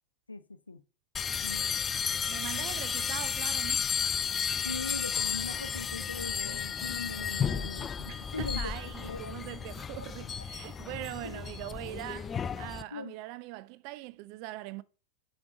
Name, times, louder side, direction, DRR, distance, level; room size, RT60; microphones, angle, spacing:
voice 1, 0.3-0.8 1.4-1.8 4.6-8.7 9.0-9.4 11.2-11.4 12.9-13.1, left 3 dB, 80° left, 0.6 m, -40 dB
sound 1, 1.1-12.8, left 7 dB, 20° left, 0.3 m, -33 dB
voice 2, 2.3-3.9 8.1-14.8, right 17 dB, 45° right, 0.5 m, -42 dB
6.0 x 5.2 x 5.6 m
figure-of-eight pair, 90°, 0 cm